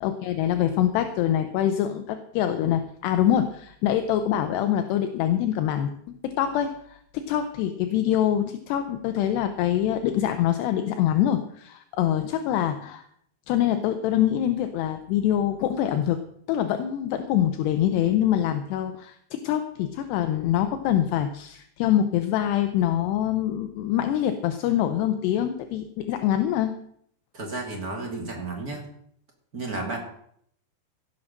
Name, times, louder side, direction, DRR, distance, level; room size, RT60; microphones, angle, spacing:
voice 1, 0.0-5.9 6.2-13.0 13.5-16.2 16.5-26.7, left 11 dB, 80° left, 8 dB, 2.8 m, -24 dB
voice 2, 27.3-28.8 29.5-30.0, right 3 dB, 30° right, 1 dB, 2.0 m, -32 dB
16.5 x 7.4 x 6.5 m, 0.68 s
omnidirectional pair, 5.0 m